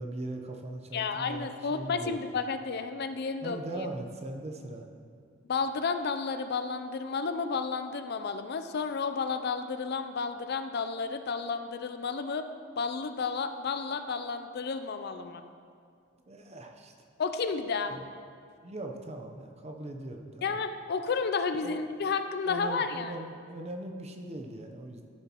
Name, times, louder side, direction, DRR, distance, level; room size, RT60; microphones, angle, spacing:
voice 1, 0.0-2.3 3.4-4.9 16.3-16.9 17.9-18.1 18.6-20.6 21.6-21.8 22.4-25.1, right 1 dB, 35° right, 4 dB, 0.7 m, -40 dB
voice 2, 0.9-3.6 5.5-12.5 12.8-15.4 17.2-17.9 20.4-23.1, left 5 dB, 55° left, 8 dB, 0.4 m, -32 dB
13.5 x 7.0 x 3.0 m, 2.3 s
head